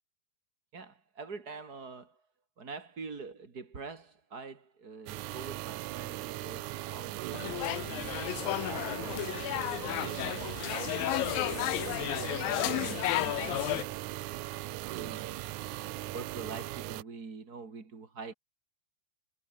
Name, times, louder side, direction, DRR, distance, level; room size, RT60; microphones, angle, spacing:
voice 1, 0.7-2.2 2.6-10.4 10.7-11.1 11.4-14.6 14.9-15.3 16.1-18.3, right 4 dB, 30° right, 2.8 m, -46 dB
sound 1, 5.1-17.0, right 17 dB, 75° right, 1.8 m, -39 dB
sound 2, 7.3-13.8, left 17 dB, 85° left, 2.5 m, -33 dB
omnidirectional pair, 4.2 m